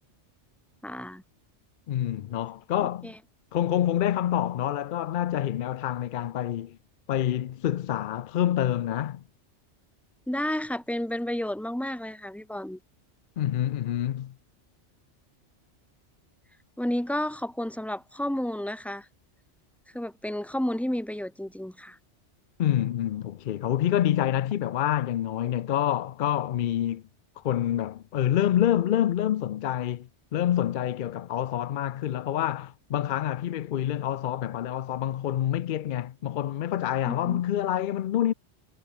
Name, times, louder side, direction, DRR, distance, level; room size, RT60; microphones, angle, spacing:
voice 1, 0.8-1.2 2.8-3.2 10.3-12.8 16.8-19.1 19.9-22.0 37.1-37.4, left 1 dB, ahead, 2.1 m, -31 dB
voice 2, 1.9-3.1 3.5-6.8 7.1-9.2 13.4-14.3 22.6-27.0 27.4-38.3, left 11 dB, 60° left, 0.5 m, -27 dB
omnidirectional pair, 1.2 m